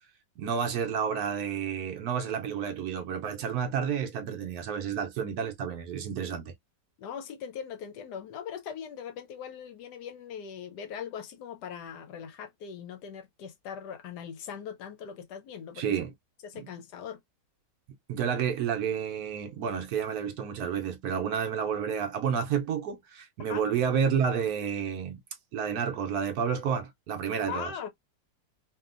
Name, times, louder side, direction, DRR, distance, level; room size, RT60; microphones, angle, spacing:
voice 1, 0.4-6.5 15.8-16.1 16.5-16.7 18.1-25.2 25.5-27.7, right 7 dB, 70° right, 1.0 m, -30 dB
voice 2, 7.0-16.0 16.4-17.2 23.5-23.6 27.5-27.9, left 7 dB, 75° left, 1.1 m, -40 dB
2.7 x 2.7 x 2.4 m
omnidirectional pair, 1.9 m